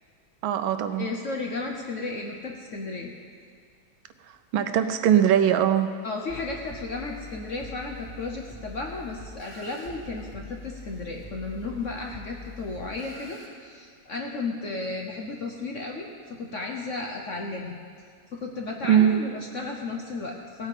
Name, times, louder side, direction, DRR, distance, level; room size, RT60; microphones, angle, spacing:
voice 1, 0.4-1.1 4.5-5.9 18.9-19.1, right 9 dB, 80° right, 9 dB, 1.4 m, -20 dB
voice 2, 1.0-3.1 6.0-17.8 18.3-20.7, left 3 dB, 55° left, 1 dB, 0.9 m, -34 dB
sound 1, 6.3-13.5, left 2 dB, 25° left, 2.7 m, -44 dB
17.0 x 8.6 x 5.0 m, 2.1 s
omnidirectional pair, 2.2 m